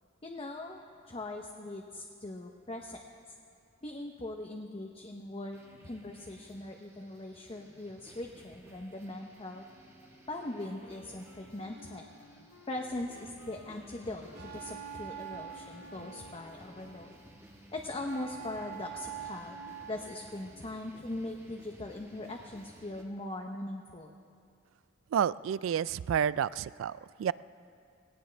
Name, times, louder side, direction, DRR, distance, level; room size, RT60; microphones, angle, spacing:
voice 1, 0.2-0.8 1.1-3.0 3.8-5.6 5.8-9.7 10.3-12.1 12.7-17.1 17.7-19.6 19.9-24.2, left 1 dB, 30° left, 2 dB, 0.7 m, -40 dB
sound 1, 5.5-23.0, right 1 dB, 15° right, 1.3 m, -56 dB
Wind instrument woodwind instrument, 10.4-17.5, left 3 dB, 90° left, 0.9 m, -59 dB
sound 2, 10.6-13.0 14.4-17.2 17.9-20.6, right 8 dB, 55° right, 2.0 m, -46 dB
voice 2, 25.1-27.3, right 8 dB, 80° right, 19 dB, 0.3 m, -30 dB
20.0 x 18.0 x 3.3 m, 2.4 s
head